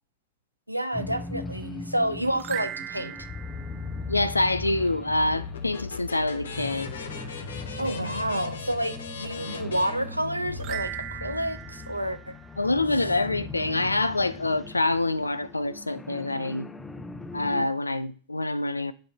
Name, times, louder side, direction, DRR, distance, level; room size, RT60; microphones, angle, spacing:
voice 1, 0.7-3.3 7.8-12.4, right 1 dB, 90° right, 0.5 m, -29 dB
sound 1, 0.9-17.7, left 3 dB, 10° left, 0.6 m, -40 dB
sound 2, 2.3-4.8 10.6-13.2, right 13 dB, 40° right, 0.8 m, -39 dB
voice 2, 4.1-6.9 12.6-16.7 17.3-18.9, left 2 dB, 80° left, 0.3 m, -26 dB
sound 3, 5.2-10.8, left 4 dB, 65° left, 0.8 m, -38 dB
10.0 x 3.9 x 4.1 m
figure-of-eight pair, 90°, 0 cm